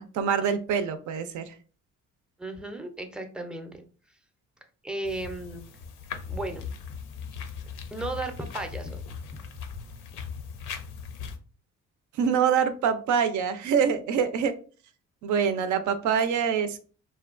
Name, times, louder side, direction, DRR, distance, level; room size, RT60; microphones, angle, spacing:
voice 1, 0.0-1.5 12.2-14.5 15.2-16.8, right 7 dB, 75° right, 11 dB, 0.5 m, -25 dB
voice 2, 2.4-3.7 4.8-5.7 6.3-6.7 7.9-9.0 9.3-9.4, right 2 dB, 5° right, 6 dB, 0.4 m, -35 dB
sound 1, 5.0-11.4, left 6 dB, 80° left, 0.5 m, -39 dB
2.8 x 2.2 x 2.4 m, 0.39 s
cardioid pair, 90°, 30 cm